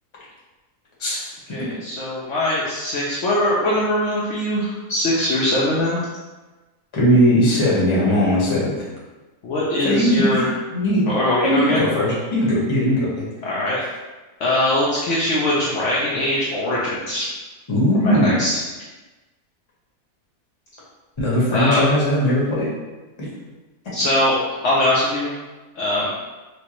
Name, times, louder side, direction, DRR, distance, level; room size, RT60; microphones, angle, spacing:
voice 1, 1.0-1.3 6.9-8.9 9.8-11.1 11.4-13.2 13.8-13.9 17.7-18.4 21.2-22.7 23.2-23.3, equal, 25° left, -6 dB, 0.8 m, -19 dB
voice 2, 1.5-6.0 9.4-10.4 11.1-11.9 13.4-13.8 14.4-17.3 18.0-18.6 21.5-21.9 23.9-24.4 24.6-25.3 25.8-26.1, left 1 dB, 65° left, -6 dB, 0.9 m, -21 dB
4.3 x 2.2 x 3.0 m, 1.2 s
omnidirectional pair, 1.6 m